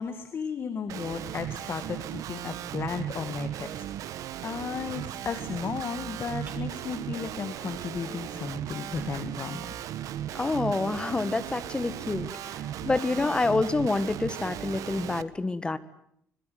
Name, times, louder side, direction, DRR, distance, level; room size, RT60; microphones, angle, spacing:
voice 1, 0.0-9.7, left 6 dB, 45° left, 9 dB, 2.1 m, -35 dB
Guitar, 0.9-15.2, right 11 dB, 80° right, 1.2 m, -37 dB
sound 1, 6.5-6.6 7.1-7.3 7.7-7.8 8.0-8.1 8.6-11.2, right 2 dB, 25° right, 5.9 m, -52 dB
voice 2, 10.3-12.5 12.8-15.8, left 3 dB, 15° left, 13 dB, 1.6 m, -27 dB
25.5 x 22.0 x 9.4 m, 0.70 s
cardioid pair, 145°, 6 cm